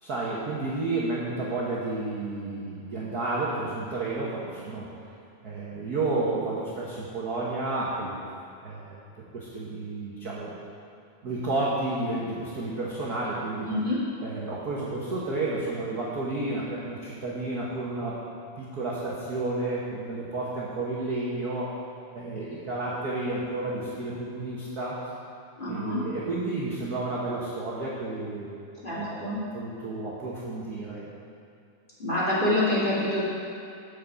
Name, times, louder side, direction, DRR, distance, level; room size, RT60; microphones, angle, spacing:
voice 1, 0.0-4.9 5.4-8.1 8.6-10.5 11.2-13.7 14.2-18.2 18.6-21.7 22.1-25.0 25.7-28.6 28.9-31.1, right 2 dB, 55° right, -6 dB, 1.1 m, -31 dB
voice 2, 13.6-14.0 25.6-26.0 28.8-29.4 32.0-33.2, left 1 dB, 15° left, -8 dB, 2.3 m, -26 dB
10.5 x 5.7 x 6.9 m, 2.6 s
omnidirectional pair, 3.5 m